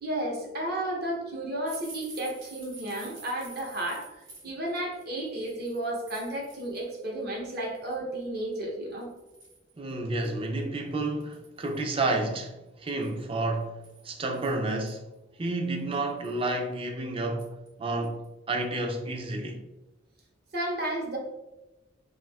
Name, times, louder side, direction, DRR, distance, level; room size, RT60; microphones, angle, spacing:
voice 1, 0.0-9.1 20.5-21.2, right 1 dB, 55° right, 0.9 m, -33 dB
sound 1, 1.6-7.0 7.3-7.9 8.5-8.6 9.0-9.7 10.2-10.3 10.6-10.7 11.2-11.9 12.9-14.9 15.5-15.6 15.9-16.5 17.4-17.7 18.0-18.3 18.6-18.7, right 4 dB, 75° right, 1.0 m, -49 dB
voice 2, 9.8-12.5 12.8-15.0 15.4-18.2 18.5-19.6, right 2 dB, 30° right, 0.4 m, -30 dB
2.6 x 2.4 x 3.3 m
head